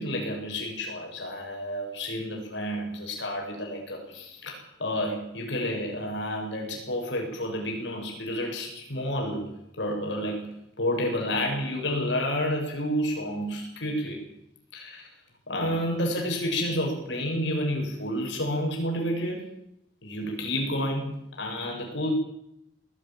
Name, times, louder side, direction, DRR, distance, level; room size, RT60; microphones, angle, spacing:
voice 1, 0.0-9.5 9.8-10.5 10.8-14.3 14.7-15.1 15.5-19.5 20.0-22.1, equal, 80° left, 1 dB, 7.5 m, -30 dB
20.0 x 16.0 x 9.0 m, 0.79 s
head